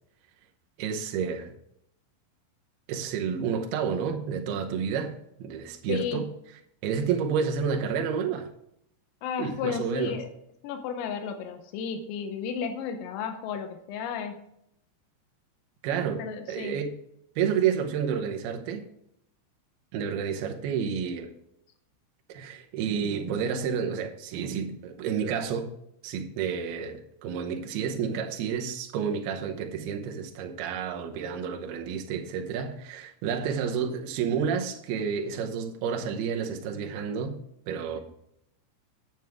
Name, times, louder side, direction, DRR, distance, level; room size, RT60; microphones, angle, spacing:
voice 1, 0.8-1.5 2.9-5.1 5.4-6.3 6.8-8.5 9.4-10.2 15.8-16.9 17.4-18.8 19.9-21.3 22.3-25.7 26.0-37.4 37.7-38.0, right 7 dB, 75° right, 2.3 m, -30 dB
voice 2, 5.9-6.2 9.2-10.3 10.6-14.4 16.2-16.8, left 7 dB, 90° left, 3.5 m, -33 dB
9.3 x 9.1 x 3.5 m
omnidirectional pair, 5.8 m